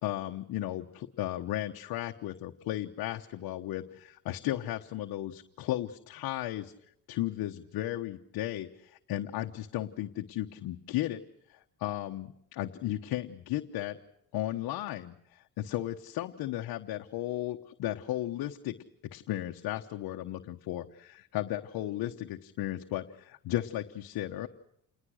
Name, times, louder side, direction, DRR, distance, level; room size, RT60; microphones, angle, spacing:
voice 1, 0.0-6.7 7.1-11.2 11.5-14.0 14.3-18.7 19.1-24.5, left 14 dB, 80° left, 4 dB, 1.2 m, -35 dB
28.0 x 20.0 x 6.4 m, 0.72 s
cardioid pair, 95°, 36 cm